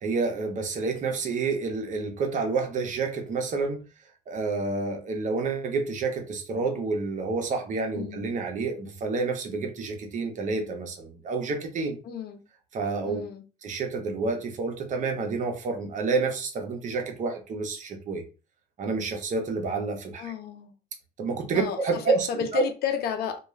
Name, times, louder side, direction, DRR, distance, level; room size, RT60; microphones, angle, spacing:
voice 1, 0.0-3.8 4.3-12.0 12.7-13.2 13.6-18.2 18.8-20.3 21.2-22.3 22.5-22.6, right 4 dB, 45° right, 0.7 m, -29 dB
voice 2, 7.9-8.2 12.0-12.4 13.0-13.4 20.2-20.7 21.5-23.4, left 7 dB, 70° left, 0.5 m, -32 dB
2.3 x 2.3 x 3.0 m
cardioid pair, 110°, 17 cm